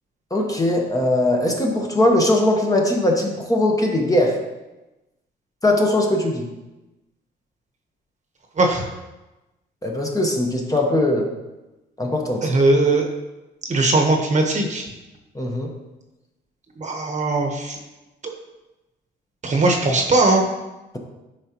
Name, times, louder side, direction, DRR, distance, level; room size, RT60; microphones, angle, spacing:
voice 1, 0.3-4.4 5.6-6.5 9.8-11.3 12.0-12.5 15.3-15.7, left 1 dB, 15° left, 1 dB, 1.1 m, -20 dB
voice 2, 12.4-13.1 13.7-14.9 16.8-17.8 19.4-20.4, right 2 dB, 35° right, 2 dB, 1.1 m, -19 dB
8.7 x 4.9 x 2.9 m, 1.0 s
cardioid pair, 90°, 20 cm